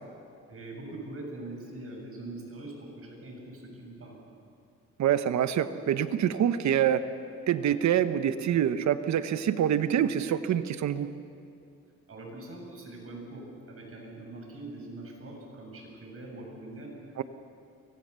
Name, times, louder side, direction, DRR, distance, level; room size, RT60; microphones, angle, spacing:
voice 1, 0.5-4.2 12.1-17.2, right 2 dB, 50° right, 0 dB, 7.2 m, -43 dB
voice 2, 5.0-7.0 7.5-11.1 17.2-17.3, right 10 dB, 65° right, 11 dB, 1.1 m, -26 dB
24.5 x 19.5 x 6.9 m, 2.6 s
cardioid pair, 90°, 30 cm